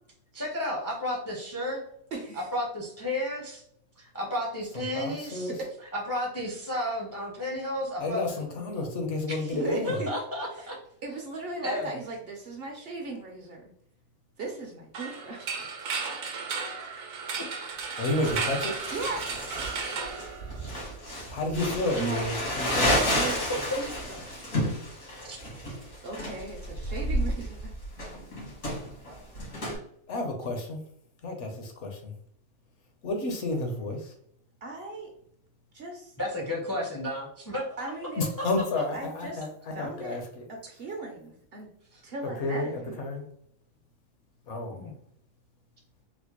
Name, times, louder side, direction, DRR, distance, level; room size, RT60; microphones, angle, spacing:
voice 1, 0.3-1.8 2.5-3.6 4.0-5.5 5.9-8.6 9.3-10.8 11.6-11.8 17.4-17.5 25.3-25.4 36.2-37.7 38.4-38.5 44.7-44.9, left 1 dB, 25° left, -2 dB, 0.5 m, -32 dB
voice 2, 2.1-2.5 5.5-5.7 9.6-10.1 10.5-10.8 11.0-13.7 14.4-15.7 18.9-19.7 21.9-22.3 22.8-23.5 23.8-24.5 26.0-27.7 34.6-35.1 35.7-36.1 37.8-38.3 38.9-39.4 39.7-40.2 40.5-41.7 42.0-42.9, right 3 dB, 55° right, 1 dB, 0.7 m, -38 dB
voice 3, 4.9-5.5 8.0-10.0 18.0-18.7 21.3-23.0 30.1-30.8 31.2-32.1 33.0-34.1 38.2-40.4 42.2-43.2 44.5-44.8, left 2 dB, 65° left, 4 dB, 1.0 m, -31 dB
sound 1, 14.9-20.9, right 5 dB, 90° right, 1.1 m, -34 dB
Crumpling crinkling, 18.2-29.8, equal, 80° left, 2.0 m, -31 dB
4.1 x 2.1 x 2.9 m, 0.69 s
omnidirectional pair, 1.4 m